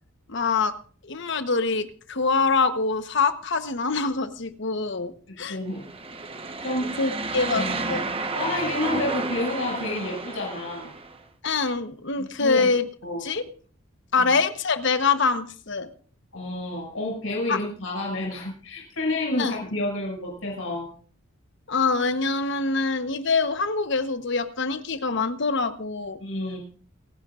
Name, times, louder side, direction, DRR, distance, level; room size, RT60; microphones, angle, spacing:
voice 1, 0.3-0.7 1.0-5.6 7.0-8.1 11.4-12.9 13.2-13.4 14.1-15.9 17.5-17.6 19.4-19.5 21.7-26.2, left 4 dB, 60° left, 10 dB, 1.1 m, -25 dB
voice 2, 5.3-5.8 6.6-6.9 7.5-7.8 8.3-10.9 12.2-12.7 13.0-13.2 14.2-14.3 16.3-20.9 26.2-26.6, left 2 dB, 75° left, -1 dB, 6.3 m, -29 dB
sound 1, 5.7-11.2, right 3 dB, 25° right, 1.1 m, -31 dB
29.5 x 10.5 x 2.5 m, 0.43 s
head